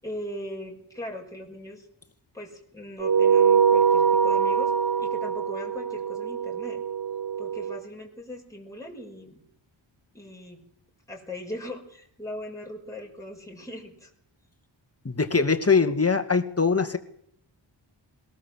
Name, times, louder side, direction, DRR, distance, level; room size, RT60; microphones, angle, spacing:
voice 1, 0.0-1.9 2.3-4.7 5.0-6.8 7.4-9.4 10.1-10.6 11.1-14.1, left 1 dB, 5° left, -1 dB, 6.0 m, -39 dB
sound 1, 3.0-7.8, right 7 dB, 50° right, 1.0 m, -23 dB
voice 2, 15.0-17.0, left 5 dB, 30° left, 7 dB, 2.3 m, -22 dB
22.0 x 18.0 x 7.7 m, 0.69 s
wide cardioid pair, 90°, 47 cm